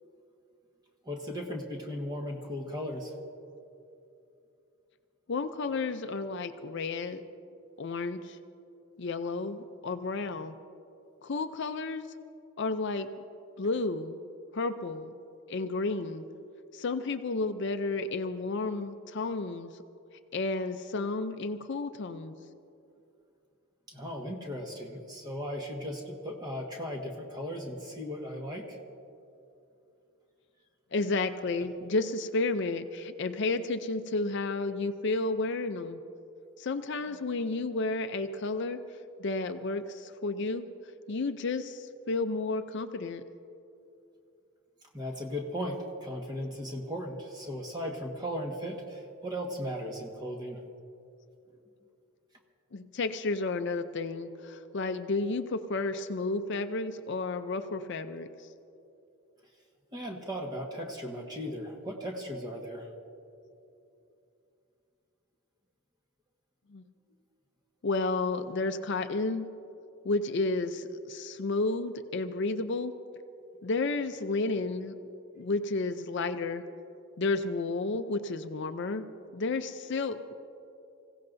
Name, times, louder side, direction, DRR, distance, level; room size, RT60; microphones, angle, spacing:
voice 1, 1.0-3.1 23.9-28.8 44.9-50.6 59.9-62.9, equal, 20° right, 1 dB, 1.4 m, -37 dB
voice 2, 5.3-7.2 7.8-8.4 9.0-10.5 11.2-12.1 12.6-13.1 13.6-14.2 14.5-15.1 15.5-16.2 16.7-19.7 20.3-22.4 30.9-36.0 36.6-38.8 39.2-40.6 41.1-43.2 52.7-58.5 66.7-66.8 67.8-69.4 70.0-72.9 73.6-74.9 75.4-76.6 77.2-79.0 79.3-80.4, left 3 dB, 50° left, 9 dB, 0.5 m, -32 dB
26.5 x 16.0 x 2.6 m, 2.7 s
head